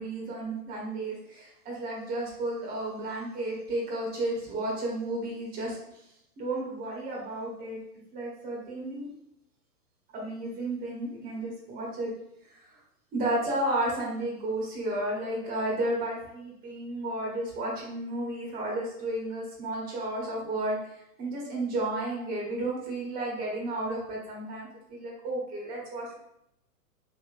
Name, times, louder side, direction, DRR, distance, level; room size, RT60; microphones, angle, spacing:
voice 1, 0.0-6.0 6.4-7.8 8.1-9.1 10.1-12.1 12.5-12.7 13.1-26.2, right 1 dB, 20° right, -3 dB, 0.9 m, -32 dB
3.3 x 2.9 x 2.5 m, 0.78 s
hypercardioid pair, 115°, 47 cm